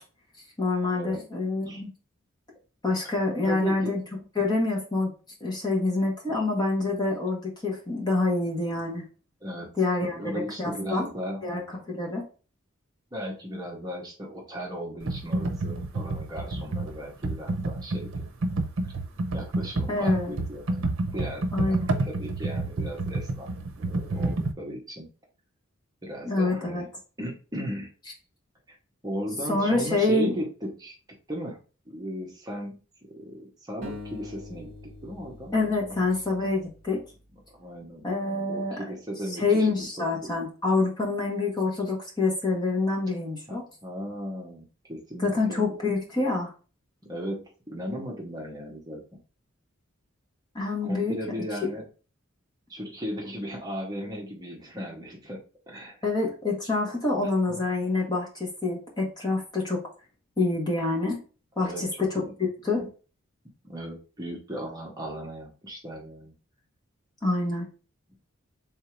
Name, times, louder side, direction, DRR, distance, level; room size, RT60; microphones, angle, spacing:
voice 1, 0.6-1.9 2.8-4.0 4.4-5.1 5.4-9.0 9.8-10.3 10.6-11.1 11.4-12.2 19.9-20.3 21.5-21.8 26.2-26.8 29.5-30.3 35.5-37.0 38.0-38.8 39.4-43.6 45.2-46.5 50.5-51.1 56.0-59.8 60.4-61.2 61.6-62.2 62.6-62.9 67.2-67.7, left 3 dB, 20° left, -2 dB, 1.1 m, -26 dB
voice 2, 3.5-3.9 6.3-6.4 9.4-9.7 10.0-11.5 13.1-18.1 19.3-23.5 23.8-25.1 26.0-26.9 27.2-27.9 28.7-28.8 29.0-30.9 31.3-31.6 31.9-32.8 33.1-34.7 35.0-36.1 37.5-38.0 38.5-39.7 40.0-40.3 43.5-45.7 47.1-49.0 50.8-51.9 52.7-55.4 55.7-56.0 57.5-57.7 61.6-62.3 63.6-66.3, equal, 20° right, -2 dB, 1.0 m, -36 dB
Computer keyboard, 15.0-24.5, right 2 dB, 70° right, 0.7 m, -29 dB
sound 1, 33.8-37.0, left 2 dB, 40° right, 0.9 m, -44 dB
3.6 x 2.7 x 4.4 m, 0.36 s
head